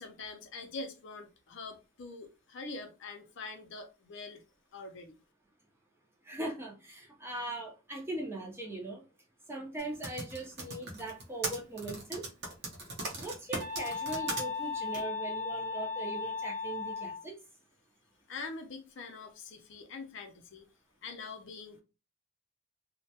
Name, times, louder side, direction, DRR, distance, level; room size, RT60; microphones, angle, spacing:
voice 1, 0.0-4.4 4.7-5.1 18.3-20.7 21.0-21.8, left 3 dB, 55° left, 0.4 m, -44 dB
voice 2, 6.3-9.0 9.5-12.2 13.1-17.3, right 2 dB, 10° right, 0.4 m, -40 dB
Typing, 9.8-14.4 14.9-15.0, right 2 dB, 50° right, 0.7 m, -38 dB
sound 1, 13.6-17.2, left 5 dB, 80° right, 0.9 m, -36 dB
2.2 x 2.1 x 2.7 m
head